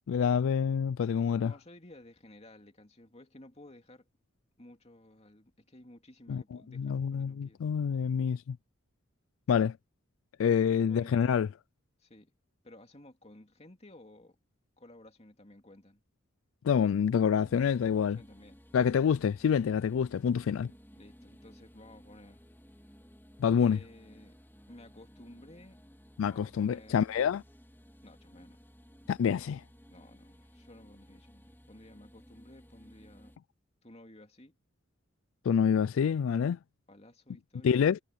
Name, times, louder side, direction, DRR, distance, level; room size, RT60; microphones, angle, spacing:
voice 1, 0.1-1.5 6.3-6.4 6.8-8.6 9.5-9.8 10.4-11.5 16.6-18.2 18.7-20.7 23.4-23.8 26.2-27.4 29.1-29.6 35.5-36.6 37.6-38.0, left 7 dB, 80° left, 0.3 m, -27 dB
voice 2, 1.4-4.1 4.6-7.6 10.8-11.4 12.0-12.3 12.6-14.4 14.8-16.0 17.8-19.1 20.9-22.4 23.5-24.4 24.7-25.9 26.2-27.1 28.0-28.6 29.9-33.3 33.8-34.6 36.9-37.9, left 1 dB, 30° left, 2.7 m, -54 dB
sound 1, 17.4-33.4, equal, 10° left, 3.7 m, -57 dB
head